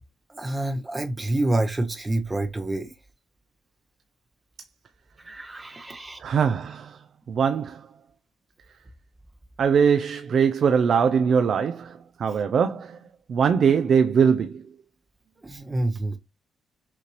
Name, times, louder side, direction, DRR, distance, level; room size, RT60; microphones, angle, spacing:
voice 1, 0.3-2.9 5.2-6.2 15.4-16.2, right 2 dB, 20° right, 0.7 m, -27 dB
voice 2, 6.2-7.0 7.3-7.9 9.6-13.0 13.3-14.6, right 6 dB, 55° right, 0.4 m, -21 dB
5.8 x 2.5 x 3.0 m
cardioid pair, 90°, 0 cm